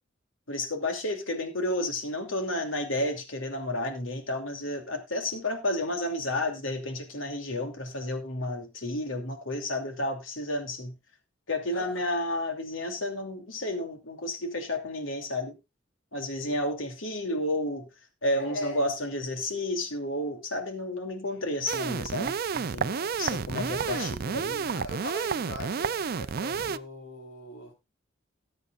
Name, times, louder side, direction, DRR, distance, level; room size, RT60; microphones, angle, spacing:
voice 1, 0.5-10.9 11.5-15.5 16.1-17.8 18.2-22.9 23.2-24.7, left 1 dB, 90° left, 2.8 m, -31 dB
voice 2, 11.7-12.1 18.4-18.8 21.2-21.4 22.8-23.1 23.8-24.1 24.7-27.7, left 1 dB, 65° left, 4.5 m, -39 dB
sound 1, 21.7-26.8, right 5 dB, 50° right, 0.5 m, -30 dB
19.5 x 8.1 x 2.5 m
head